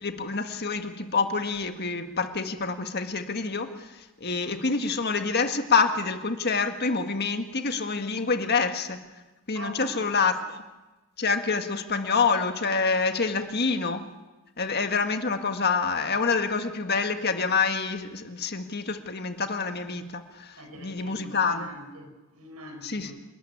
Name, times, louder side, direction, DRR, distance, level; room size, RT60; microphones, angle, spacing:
voice 1, 0.0-9.0 9.5-10.6 11.2-14.1 14.6-21.7 22.8-23.1, left 4 dB, 45° left, 7 dB, 1.7 m, -27 dB
voice 2, 9.5-10.1 20.6-23.1, right 1 dB, 90° right, 4 dB, 5.7 m, -43 dB
28.0 x 14.0 x 9.8 m, 1.1 s
head